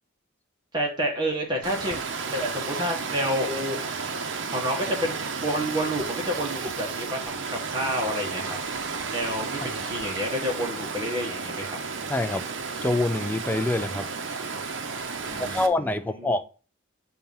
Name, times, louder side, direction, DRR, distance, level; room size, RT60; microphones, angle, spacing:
voice 1, 0.7-2.0 2.3-3.8 4.5-8.6 9.1-11.8 15.2-16.4, equal, 20° right, 1.5 m, -29 dB
Water, 1.6-15.7, right 4 dB, 60° right, 0.7 m, -32 dB
voice 2, 12.1-12.5 12.8-14.1 15.4-16.5, left 2 dB, 10° left, 0.3 m, -26 dB
7.0 x 2.8 x 5.4 m
head